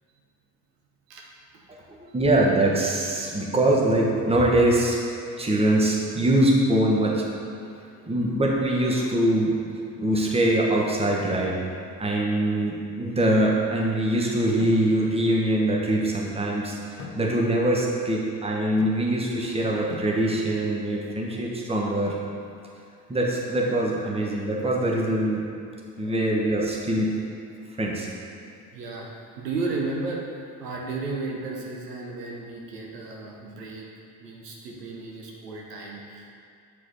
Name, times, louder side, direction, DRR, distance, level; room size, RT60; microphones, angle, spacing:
voice 1, 1.9-5.0 5.4-7.2 8.0-9.6 10.0-11.6 12.0-22.2 23.1-25.4 26.0-27.1 27.8-28.1, right 1 dB, 10° right, -2 dB, 1.2 m, -23 dB
sound 1, 14.6-15.2 17.0-17.7 18.8-19.4 19.9-20.7 22.1-22.4 23.9-24.5, left 5 dB, 60° left, 0.9 m, -43 dB
voice 2, 28.7-33.9 34.2-36.3, right 3 dB, 75° right, -2 dB, 1.0 m, -34 dB
8.2 x 4.8 x 4.1 m, 2.5 s
figure-of-eight pair, 50°, 48 cm